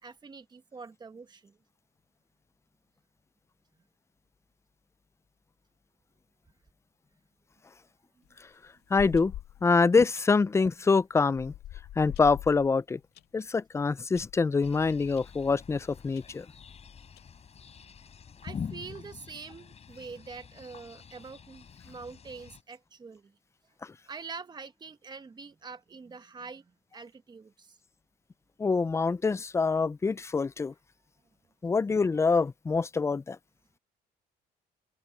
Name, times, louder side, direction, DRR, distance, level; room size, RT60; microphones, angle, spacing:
voice 1, 0.0-1.6 18.4-23.4 24.1-27.8, right 4 dB, 25° right, 1.4 m, -45 dB
sound 1, 8.2-9.7 10.2-10.4 11.2-13.3 13.7-13.8 14.1-14.4 15.2-15.3 15.6-15.7 16.2-16.3 17.0-17.5, left 13 dB, 75° left, 2.4 m, -43 dB
voice 2, 8.9-9.3 9.6-11.5 12.0-13.0 13.3-16.4 28.6-30.7 31.6-33.4, left 4 dB, 15° left, 0.4 m, -25 dB
sound 2, 14.6-22.6, left 6 dB, 40° left, 6.6 m, -45 dB
open air
cardioid pair, 110°, 17 cm